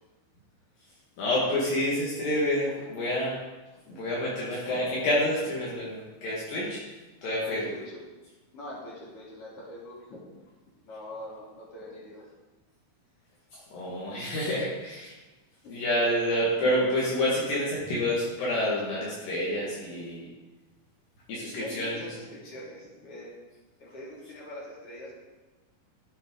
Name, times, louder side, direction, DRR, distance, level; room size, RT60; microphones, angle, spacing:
voice 1, 1.2-3.4 3.9-6.8 7.2-7.7 13.5-15.1 15.7-20.3 21.3-22.1, left 1 dB, 65° left, -6 dB, 3.4 m, -28 dB
voice 2, 7.4-8.0 8.5-10.2 10.8-12.2 15.6-15.7 21.5-23.3 23.8-25.2, left 1 dB, 40° left, -6 dB, 3.7 m, -43 dB
14.0 x 8.2 x 3.9 m, 1.2 s
omnidirectional pair, 4.5 m